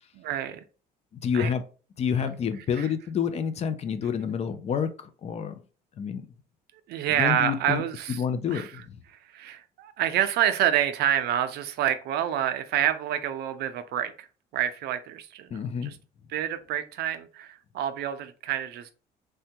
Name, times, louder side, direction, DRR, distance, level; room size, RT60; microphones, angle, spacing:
voice 1, 0.2-0.6 1.3-1.5 2.8-2.9 6.9-8.2 8.5-8.7 9.3-14.3 14.5-16.0 16.3-18.9, right 10 dB, 75° right, 10 dB, 0.5 m, -28 dB
voice 2, 1.1-1.6 2.0-5.6 6.0-6.3 7.1-7.8 8.1-9.0 15.5-15.9, left 7 dB, 40° left, 10 dB, 0.4 m, -28 dB
3.3 x 2.2 x 2.8 m, 0.36 s
cardioid pair, 110°, 17 cm